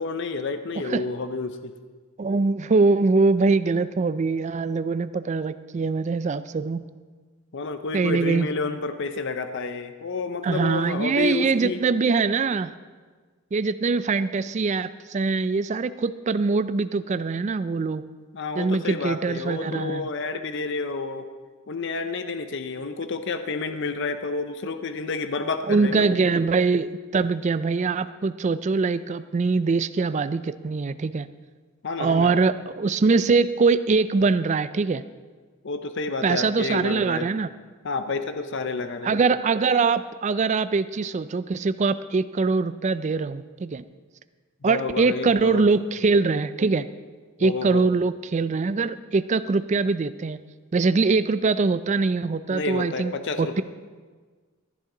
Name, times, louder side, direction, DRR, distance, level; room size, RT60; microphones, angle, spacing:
voice 1, 0.0-1.7 7.5-11.8 18.3-21.3 21.7-26.2 31.8-32.3 35.6-37.3 37.8-39.2 44.6-45.7 47.4-47.9 52.5-53.6, left 3 dB, 55° left, 8 dB, 0.6 m, -30 dB
voice 2, 2.2-6.8 7.9-8.5 10.4-12.7 13.5-18.0 18.6-20.1 25.7-31.3 32.0-35.0 36.2-37.5 39.0-43.8 44.6-46.9 47.4-50.4 50.7-53.1 53.4-53.6, right 4 dB, 30° right, 13 dB, 0.3 m, -23 dB
15.0 x 11.0 x 3.8 m, 1.5 s
head